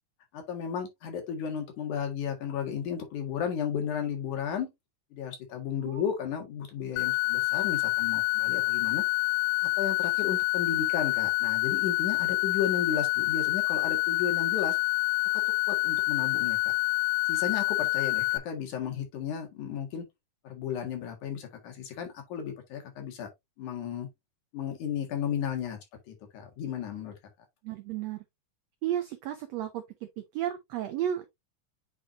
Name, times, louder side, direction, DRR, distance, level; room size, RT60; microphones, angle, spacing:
voice 1, 0.3-4.7 5.1-9.0 9.8-14.8 15.3-16.6 17.3-20.0 20.4-23.3 23.6-24.1 24.5-25.8 26.1-27.1, left 8 dB, 65° left, 3.1 m, -34 dB
sound 1, 7.0-18.4, left 24 dB, 80° left, 2.2 m, -27 dB
voice 2, 27.6-28.2 28.8-29.8 30.2-31.3, right 11 dB, 80° right, 1.5 m, -33 dB
8.3 x 4.5 x 2.5 m
omnidirectional pair, 3.8 m